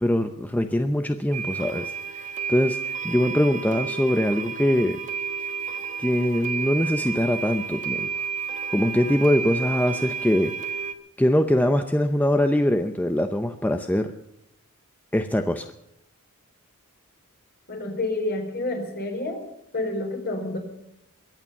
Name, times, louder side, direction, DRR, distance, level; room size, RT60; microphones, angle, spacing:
voice 1, 0.0-1.9 2.2-2.8 3.0-5.0 6.0-8.1 8.7-10.5 11.2-14.1 15.1-15.7, left 1 dB, 5° left, 7 dB, 0.7 m, -22 dB
sound 1, 1.3-10.9, right 6 dB, 35° right, 1.2 m, -31 dB
voice 2, 17.7-19.4 19.7-20.6, left 2 dB, 45° left, 3 dB, 4.4 m, -28 dB
22.5 x 8.8 x 7.0 m, 0.78 s
head